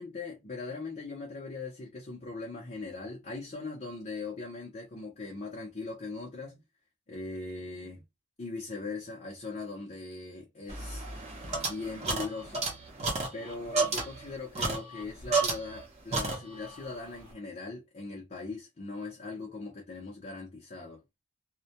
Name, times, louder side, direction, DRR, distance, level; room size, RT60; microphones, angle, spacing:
voice 1, 0.0-6.6 7.1-8.0 8.4-11.1 11.7-12.6 13.3-21.0, left 3 dB, 35° left, 0.6 m, -40 dB
sound 1, 10.7-15.9 16.1-16.8, right 3 dB, 30° right, 0.7 m, -32 dB
2.2 x 2.1 x 2.8 m
head